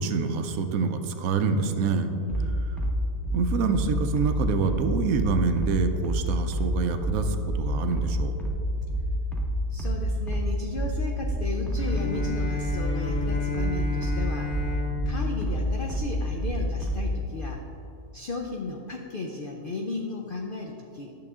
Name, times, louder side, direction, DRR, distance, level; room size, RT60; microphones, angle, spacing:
voice 1, 0.0-2.1 3.3-8.3, right 5 dB, 70° right, 7 dB, 1.0 m, -26 dB
voice 2, 2.2-2.7 9.7-14.6 15.1-17.6 18.1-21.2, left 3 dB, 65° left, 1 dB, 0.5 m, -35 dB
sound 1, 2.3-17.1, right 1 dB, ahead, 0.6 m, -28 dB
Bowed string instrument, 11.8-16.7, left 4 dB, 40° left, 1.4 m, -34 dB
10.5 x 6.8 x 3.6 m, 2.8 s
omnidirectional pair, 1.7 m